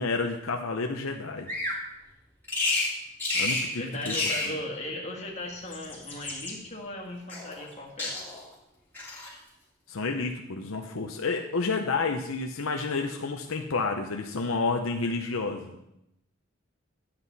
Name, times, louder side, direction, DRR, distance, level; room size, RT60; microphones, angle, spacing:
voice 1, 0.0-1.5 3.3-4.1 4.5-4.6 9.9-15.8, left 4 dB, 70° left, 3 dB, 0.7 m, -30 dB
Bird vocalization bird call bird song, 1.5-1.8 2.5-2.9 3.2-3.7 4.0-4.5 5.5-6.5 7.3-7.7 8.0-8.5 8.9-9.3, left 2 dB, 10° left, 2.1 m, -30 dB
voice 2, 3.7-8.2, left 1 dB, 30° left, -1 dB, 1.8 m, -37 dB
11.5 x 7.9 x 4.1 m, 0.84 s
head